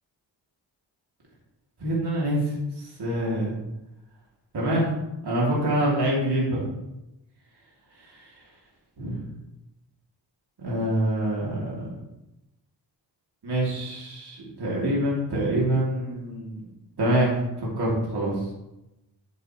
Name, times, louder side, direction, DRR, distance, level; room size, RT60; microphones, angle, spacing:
voice 1, 1.8-2.4 3.0-3.5 4.5-4.8 5.2-6.6 9.0-9.2 10.6-11.7 13.4-16.6 17.0-17.3 17.8-18.3, right 1 dB, 60° right, -5 dB, 3.1 m, -25 dB
7.9 x 7.8 x 3.3 m, 0.93 s
cardioid pair, 60°, 45 cm